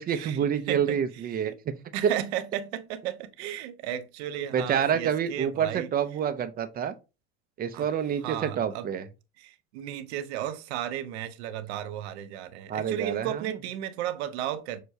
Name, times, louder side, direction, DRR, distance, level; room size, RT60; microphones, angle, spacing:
voice 1, 0.0-1.5 2.0-2.1 4.5-6.9 7.6-9.1 12.7-13.5, right 8 dB, 30° right, 0.5 m, -27 dB
voice 2, 0.7-1.0 1.4-1.5 1.9-5.9 7.7-7.9 8.2-8.9 9.4-14.8, right 11 dB, 80° right, 0.7 m, -34 dB
6.3 x 2.2 x 2.7 m
supercardioid pair, 105°, 32 cm